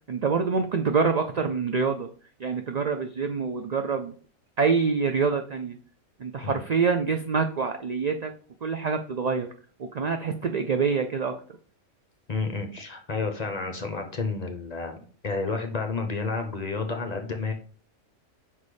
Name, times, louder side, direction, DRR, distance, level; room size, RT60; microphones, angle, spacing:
voice 1, 0.1-2.1 2.4-4.1 4.6-5.8 6.2-8.3 8.6-9.5 9.8-11.3, right 5 dB, 65° right, 6 dB, 0.4 m, -26 dB
voice 2, 12.3-17.5, left 4 dB, 35° left, 5 dB, 0.9 m, -30 dB
5.4 x 4.1 x 4.9 m, 0.43 s
omnidirectional pair, 1.3 m